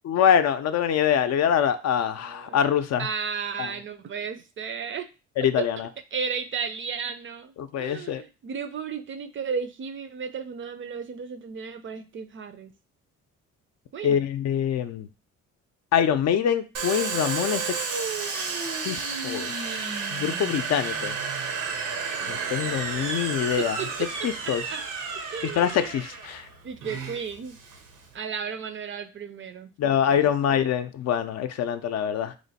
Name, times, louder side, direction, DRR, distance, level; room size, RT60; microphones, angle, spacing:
voice 1, 0.0-3.1 3.6-3.7 5.4-5.9 7.6-8.2 14.0-15.1 15.9-17.9 18.8-19.8 20.1-21.2 22.3-23.8 24.2-24.6 25.5-26.4 29.8-32.3, left 8 dB, 60° left, 10 dB, 0.5 m, -24 dB
voice 2, 2.2-2.6 3.0-5.1 5.6-5.7 6.1-12.7 13.9-14.2 22.2-23.2 23.6-24.1 24.4-24.8 25.3-25.9 26.6-27.6 28.1-30.6, right 6 dB, 40° right, 9 dB, 0.4 m, -34 dB
Domestic sounds home sounds, 16.7-28.1, right 5 dB, 85° right, 0.8 m, -32 dB
3.1 x 2.2 x 4.0 m, 0.30 s
cardioid pair, 90°, 30 cm